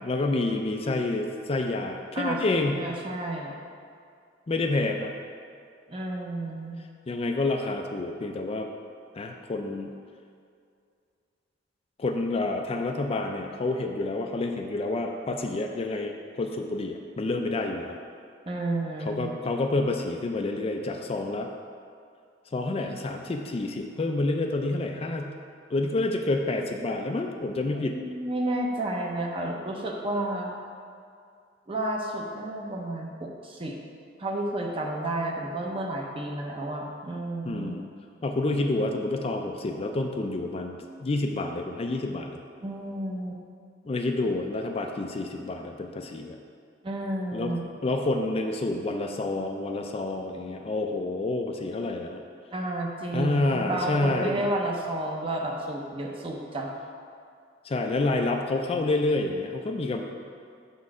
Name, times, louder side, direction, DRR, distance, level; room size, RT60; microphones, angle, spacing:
voice 1, 0.0-2.8 4.5-5.1 7.1-8.7 9.2-9.9 12.0-18.0 19.0-21.5 22.5-25.3 25.7-28.0 37.4-37.8 38.2-42.4 43.9-46.4 47.3-47.5 47.8-52.2 53.1-54.5 57.6-60.0, left 2 dB, 30° left, 3 dB, 0.4 m, -28 dB
voice 2, 2.2-3.5 5.9-6.8 18.4-19.3 27.7-30.5 31.7-33.8 34.2-37.7 42.6-43.4 46.8-47.6 52.5-56.7, right 1 dB, 30° right, 0 dB, 0.7 m, -31 dB
6.5 x 4.2 x 4.7 m, 2.3 s
head